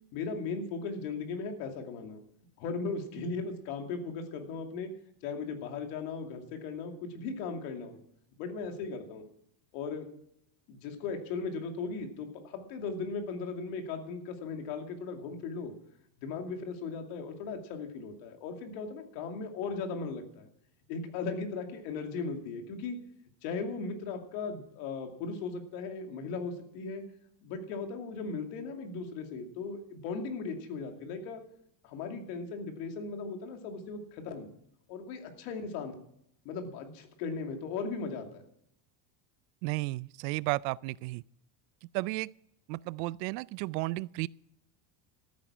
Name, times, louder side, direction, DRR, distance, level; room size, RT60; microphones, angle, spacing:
voice 1, 0.1-2.2 2.6-4.9 5.2-8.0 8.4-9.2 9.7-10.1 10.7-15.7 16.2-20.5 20.9-23.0 23.4-27.0 27.4-31.4 31.8-34.5 34.9-35.9 36.4-38.4, left 4 dB, 80° left, 2.7 m, -37 dB
voice 2, 39.6-41.2 41.9-42.3 42.7-44.3, right 21 dB, 90° right, 0.6 m, -33 dB
14.0 x 9.3 x 6.1 m
cardioid pair, 175°, 49 cm